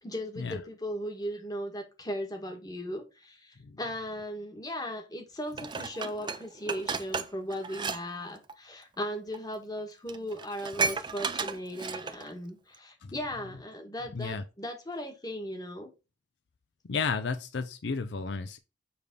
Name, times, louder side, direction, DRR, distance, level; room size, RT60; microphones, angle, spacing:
voice 1, 0.0-15.9, equal, 20° left, 1.4 m, -37 dB
Dishes pots and pans, 5.6-8.0 8.3-8.5 9.3-9.4 9.8-9.9 10.1-12.3 12.7-12.8, right 5 dB, 25° right, 0.5 m, -33 dB
voice 2, 14.1-14.4 16.9-18.6, left 4 dB, 70° left, 0.5 m, -32 dB
7.1 x 3.4 x 5.2 m
head